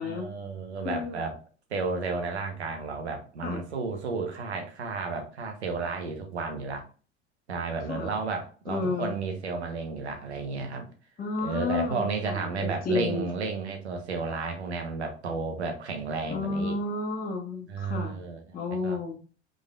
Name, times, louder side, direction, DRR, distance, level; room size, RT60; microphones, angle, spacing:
voice 1, 0.0-1.4 1.7-6.9 7.5-10.9 11.4-16.8 17.7-18.6 18.8-19.0, right 4 dB, 80° right, 4 dB, 1.2 m, -32 dB
voice 2, 0.8-1.2 3.4-3.6 7.9-8.1 8.7-9.1 11.2-13.3 16.3-18.2 18.5-19.2, left 3 dB, 25° left, -2 dB, 1.4 m, -31 dB
4.9 x 4.0 x 2.5 m, 0.38 s
figure-of-eight pair, 70°, 33 cm